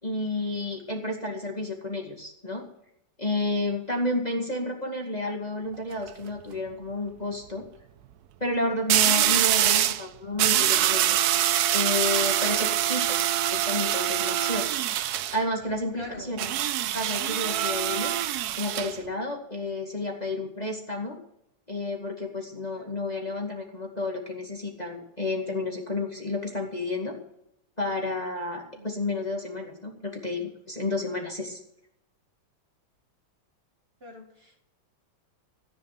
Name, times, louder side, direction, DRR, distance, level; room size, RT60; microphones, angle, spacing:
voice 1, 0.0-2.6 3.2-7.6 8.4-11.0 11.7-13.2 13.5-14.7 15.3-16.5 16.8-18.1 18.6-21.2 21.7-27.2 27.8-31.6, left 2 dB, 20° left, 0 dB, 2.2 m, -31 dB
sound 1, 5.7-6.1 8.9-10.0 10.4-15.4 16.4-18.9, right 11 dB, 65° right, 1.0 m, -24 dB
voice 2, 15.9-16.3 22.8-22.9 28.7-28.9 34.0-34.6, equal, 30° right, 0 dB, 2.3 m, -43 dB
14.5 x 10.0 x 6.0 m, 0.78 s
omnidirectional pair, 2.2 m